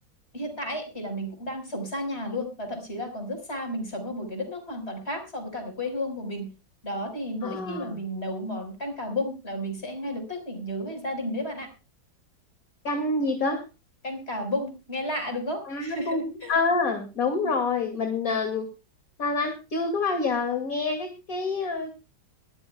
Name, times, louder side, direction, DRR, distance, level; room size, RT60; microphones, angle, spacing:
voice 1, 0.3-6.5 6.8-11.7 14.0-16.5 17.4-17.5, left 1 dB, 30° left, 6 dB, 4.9 m, -32 dB
voice 2, 7.4-7.9 12.8-13.6 15.7-18.7 19.2-21.9, left 3 dB, 45° left, 5 dB, 2.7 m, -27 dB
22.5 x 14.0 x 2.2 m, 0.30 s
omnidirectional pair, 2.1 m